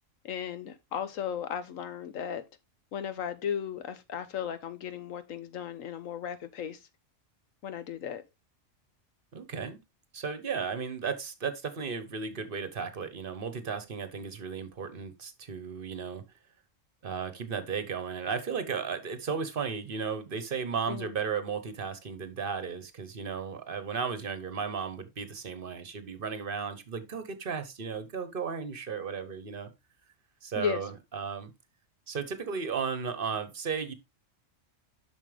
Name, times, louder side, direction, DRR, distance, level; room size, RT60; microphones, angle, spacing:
voice 1, 0.2-2.4 2.9-6.8 7.6-8.2 20.9-21.1 30.6-30.8, left 8 dB, 85° left, 1.3 m, -35 dB
voice 2, 9.3-9.8 10.1-16.2 17.0-29.7 30.4-31.5 32.1-33.9, right 6 dB, 45° right, 1.1 m, -35 dB
7.3 x 6.1 x 3.3 m
omnidirectional pair, 1.3 m